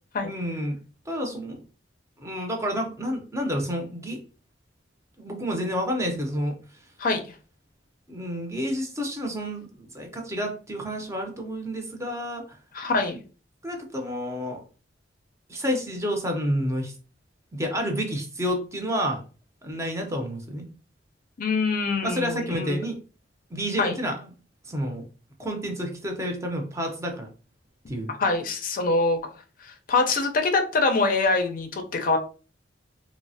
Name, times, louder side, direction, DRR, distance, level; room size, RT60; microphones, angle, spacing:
voice 1, 0.3-0.8 1.1-1.6 2.2-4.2 5.2-6.6 8.1-12.6 13.6-14.6 15.5-16.9 17.5-19.2 19.6-20.7 22.0-23.0 23.5-24.3 24.7-25.0 25.4-27.3 27.9-28.1, equal, 15° right, 2 dB, 0.6 m, -29 dB
voice 2, 12.7-13.2 21.4-22.8 23.8-24.0 28.2-29.2 29.6-32.2, left 3 dB, 50° left, 6 dB, 0.5 m, -24 dB
3.0 x 2.0 x 2.6 m, 0.36 s
head